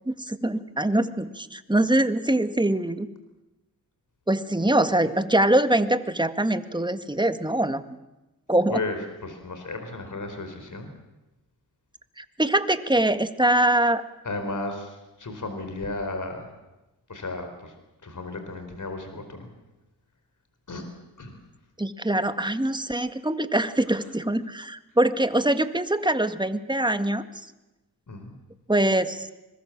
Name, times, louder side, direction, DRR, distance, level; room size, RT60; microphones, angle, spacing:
voice 1, 0.1-3.1 4.3-7.8 8.5-8.8 12.2-14.0 21.8-27.2 28.7-29.3, right 1 dB, 10° right, 10 dB, 1.8 m, -23 dB
voice 2, 8.7-10.9 14.2-16.5 17.1-17.7 18.0-19.5 20.7-20.8 21.2-21.4 28.1-28.3, left 2 dB, 50° left, 6 dB, 4.7 m, -34 dB
25.5 x 21.5 x 7.5 m, 1.0 s
cardioid pair, 50°, 39 cm